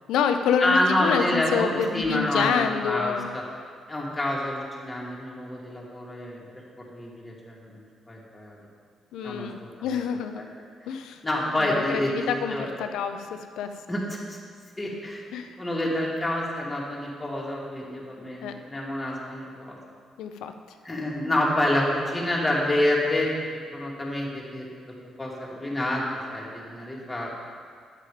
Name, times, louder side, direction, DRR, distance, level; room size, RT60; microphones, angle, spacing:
voice 1, 0.1-3.3 9.1-10.5 10.9-11.2 11.6-13.7 15.3-15.6 18.4-18.5 20.2-20.5, left 7 dB, 85° left, 7 dB, 0.7 m, -27 dB
voice 2, 0.6-3.4 3.9-6.5 6.8-7.8 8.1-8.6 9.2-10.0 10.3-10.4 11.2-12.7 13.9-14.4 14.8-15.2 15.6-19.8 20.8-23.3 23.7-24.9 25.2-26.0 26.3-27.3, left 1 dB, 15° left, -4 dB, 2.7 m, -28 dB
9.3 x 8.4 x 5.0 m, 2.1 s
cardioid pair, 90°, 0 cm